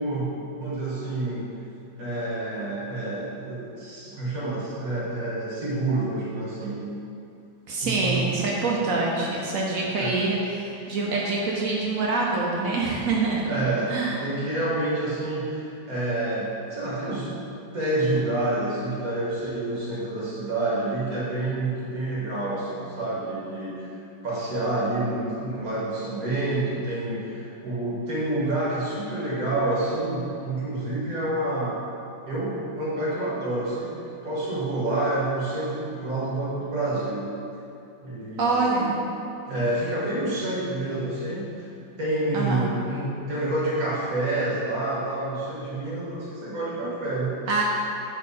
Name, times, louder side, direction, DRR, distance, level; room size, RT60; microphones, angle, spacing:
voice 1, 0.0-1.5 2.0-6.9 7.8-8.4 10.0-10.2 13.4-13.9 14.2-17.3 17.7-23.9 24.2-31.8 32.2-37.3 38.0-39.0 39.5-41.7 42.0-47.4, right 2 dB, 50° right, -7 dB, 1.8 m, -28 dB
voice 2, 7.7-13.4 13.9-14.1 38.4-38.9 42.3-42.6 47.5-47.6, right 3 dB, 65° right, -3 dB, 0.9 m, -25 dB
7.0 x 4.5 x 4.1 m, 2.7 s
omnidirectional pair, 2.1 m